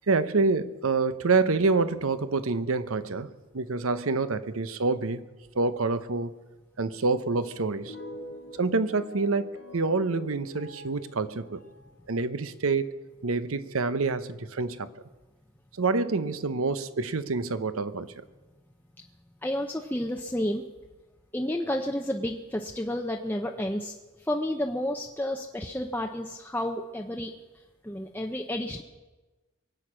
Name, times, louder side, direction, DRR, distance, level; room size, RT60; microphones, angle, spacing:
voice 1, 0.1-5.3 5.6-6.3 6.8-8.0 8.5-11.6 12.1-12.9 13.2-14.9 15.8-18.1, right 3 dB, 80° right, 0.9 m, -27 dB
sound 1, 7.4-12.4, left 1 dB, 75° left, 2.0 m, -45 dB
voice 2, 19.4-20.6 21.3-23.9 24.3-27.3 27.8-28.8, left 1 dB, 10° left, 0.7 m, -31 dB
23.5 x 8.7 x 6.2 m
head